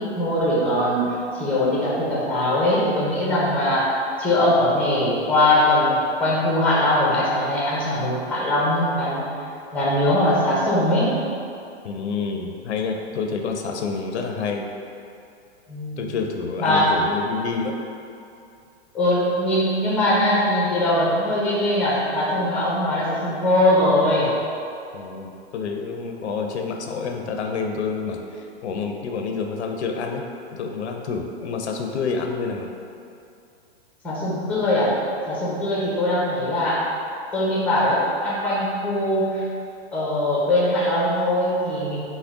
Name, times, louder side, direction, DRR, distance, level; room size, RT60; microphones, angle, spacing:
voice 1, 0.0-3.9 4.2-9.2 9.7-11.1 15.7-16.0 16.6-16.9 18.9-24.3 34.0-34.9 35.3-36.8 37.3-39.4 39.9-42.0, left 1 dB, 5° left, -6 dB, 0.5 m, -21 dB
voice 2, 11.8-14.7 16.0-17.8 24.9-30.3 30.5-32.7, left 5 dB, 90° left, 3 dB, 0.5 m, -28 dB
3.6 x 2.1 x 3.5 m, 2.5 s
hypercardioid pair, 135°, 33 cm